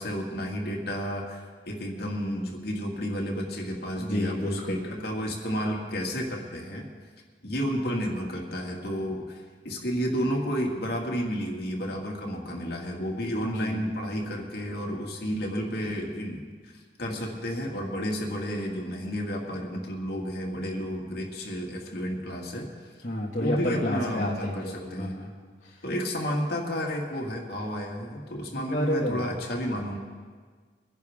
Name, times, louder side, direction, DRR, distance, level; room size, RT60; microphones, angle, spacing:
voice 1, 0.0-6.9 7.4-16.7 17.0-22.7 23.3-25.2 25.8-30.0, equal, 60° left, 0 dB, 2.1 m, -31 dB
voice 2, 4.0-4.8 13.4-13.8 23.0-25.3 28.7-29.2, left 1 dB, 45° left, -5 dB, 1.6 m, -30 dB
22.5 x 10.5 x 3.7 m, 1.6 s
head